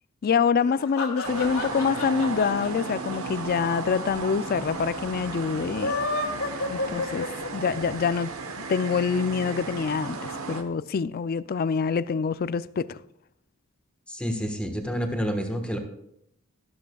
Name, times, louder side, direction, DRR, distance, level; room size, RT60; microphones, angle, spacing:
voice 1, 0.2-5.9 6.7-8.3 8.6-13.0, left 6 dB, 45° left, 0.4 m, -26 dB
sound 1, 0.6-3.9 4.2-4.3 4.5-4.6 5.6-7.7, left 3 dB, 85° left, 2.2 m, -31 dB
sound 2, 1.2-10.6, right 4 dB, 70° right, 1.1 m, -35 dB
voice 2, 14.1-15.8, equal, 5° left, 1.4 m, -29 dB
13.0 x 13.0 x 2.3 m
head